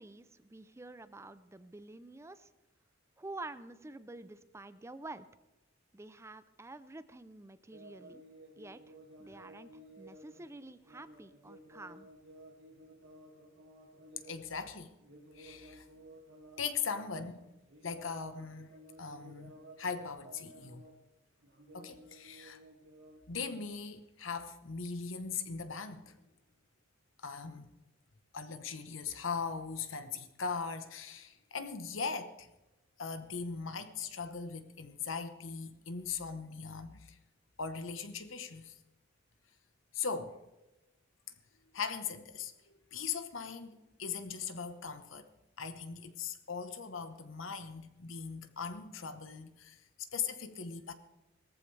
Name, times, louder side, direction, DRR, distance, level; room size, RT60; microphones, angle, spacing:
voice 1, 0.0-2.5 3.2-5.3 5.9-8.2 8.6-8.8 9.2-9.7 10.0-12.1, right 2 dB, 15° right, 0.5 m, -48 dB
sound 1, 7.7-17.1 17.4-21.1 21.4-23.2, right 1 dB, 75° right, 2.2 m, -55 dB
voice 2, 14.3-14.9 15.3-15.8 16.6-17.5 17.8-18.7 19.0-20.8 21.7-22.6 23.3-26.1 27.2-27.7 28.3-32.5 33.0-37.2 37.6-38.7 39.9-40.4 41.7-45.3 45.6-50.9, left 5 dB, 90° left, 1.1 m, -40 dB
18.5 x 14.5 x 3.3 m
head